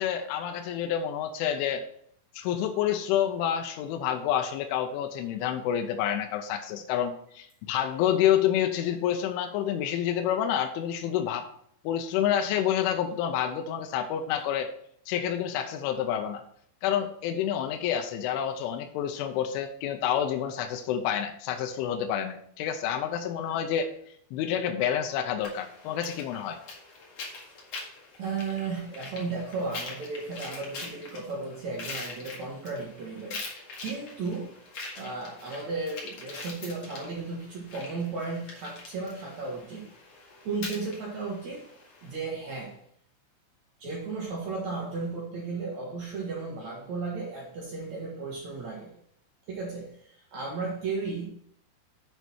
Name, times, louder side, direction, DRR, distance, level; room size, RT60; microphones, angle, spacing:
voice 1, 0.0-1.8 2.3-11.5 11.8-14.7 15.1-16.4 16.8-23.9 24.3-26.6, left 9 dB, 85° left, 5 dB, 3.1 m, -28 dB
sound 1, 25.4-42.2, left 3 dB, 50° left, 2.0 m, -43 dB
voice 2, 28.2-33.4 33.8-34.5 34.9-39.9 40.4-41.7 42.0-42.8 43.8-48.9 49.5-51.3, right 4 dB, 70° right, -2 dB, 1.7 m, -34 dB
8.1 x 6.6 x 4.4 m, 0.67 s
omnidirectional pair, 5.7 m